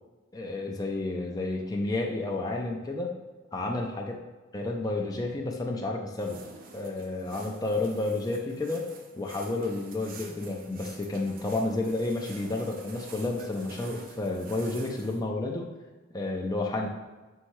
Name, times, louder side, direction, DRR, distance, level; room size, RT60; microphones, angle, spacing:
voice 1, 0.3-3.1 3.5-4.1 4.5-6.4 6.7-8.9 9.2-15.7 16.1-16.9, left 2 dB, 20° left, 0 dB, 0.4 m, -31 dB
sound 1, 6.1-15.2, right 4 dB, 45° right, 0.5 m, -48 dB
5.5 x 2.7 x 3.0 m, 1.2 s
head